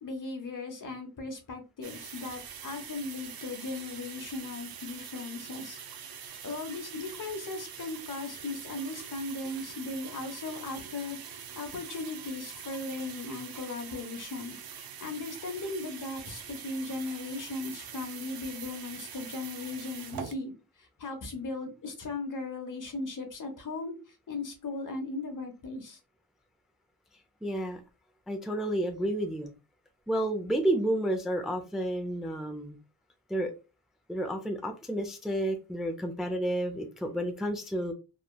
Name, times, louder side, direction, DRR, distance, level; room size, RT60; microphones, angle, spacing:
voice 1, 0.0-5.8 6.4-14.6 15.0-20.5 21.0-23.9 24.3-26.0, left 3 dB, 55° left, 5 dB, 0.9 m, -37 dB
sound 1, 1.8-20.3, right 7 dB, 70° right, 0.5 m, -44 dB
voice 2, 27.4-27.8 28.3-29.5 30.1-32.8 33.3-33.5 34.1-37.9, right 1 dB, ahead, 5 dB, 0.4 m, -31 dB
3.2 x 2.2 x 2.2 m, 0.29 s
cardioid pair, 75°, 38 cm